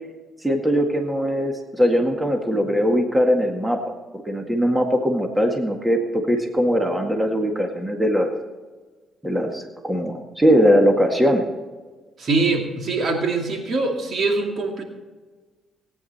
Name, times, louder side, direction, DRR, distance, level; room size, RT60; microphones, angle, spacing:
voice 1, 0.4-8.3 9.2-11.4, equal, 10° right, 3 dB, 1.9 m, -20 dB
voice 2, 12.2-14.8, right 3 dB, 55° right, 2 dB, 2.5 m, -23 dB
18.0 x 9.7 x 4.3 m, 1.3 s
cardioid pair, 90°, 0 cm